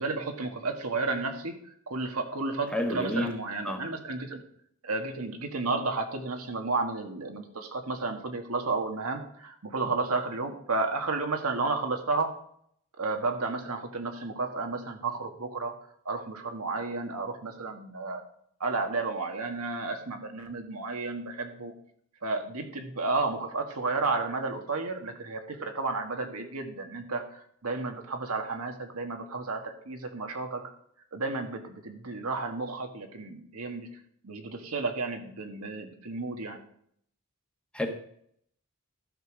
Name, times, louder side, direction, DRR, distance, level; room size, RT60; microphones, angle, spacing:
voice 1, 0.0-1.5 1.9-4.4 4.8-12.3 13.0-15.7 16.0-18.2 18.6-21.7 22.2-30.6 31.1-33.9 34.2-36.6, right 3 dB, 90° right, 4 dB, 1.7 m, -32 dB
voice 2, 2.7-3.3 3.6-3.8 37.7-37.9, left 1 dB, 5° left, 4 dB, 1.2 m, -29 dB
12.0 x 6.4 x 5.1 m, 0.65 s
head